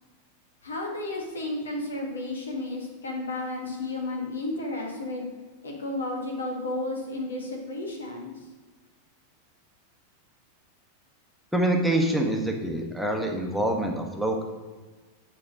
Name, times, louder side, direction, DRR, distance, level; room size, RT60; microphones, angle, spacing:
voice 1, 0.6-5.3 5.6-8.4, left 2 dB, 70° left, 0 dB, 1.5 m, -32 dB
voice 2, 11.5-14.4, right 1 dB, ahead, 1 dB, 1.3 m, -25 dB
8.5 x 4.3 x 6.5 m, 1.3 s
figure-of-eight pair, 90°, 0 cm